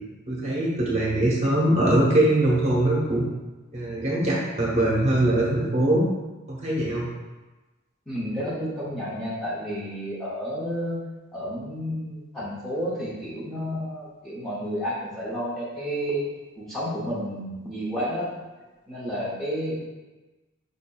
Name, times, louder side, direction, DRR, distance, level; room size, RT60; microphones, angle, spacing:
voice 1, 0.3-3.2 3.7-6.0 6.5-7.1, right 1 dB, 30° right, -4 dB, 0.8 m, -22 dB
voice 2, 8.1-11.0 11.3-16.3 16.6-18.3 18.9-19.8, equal, ahead, -9 dB, 0.6 m, -31 dB
5.2 x 2.6 x 2.2 m, 1.2 s
head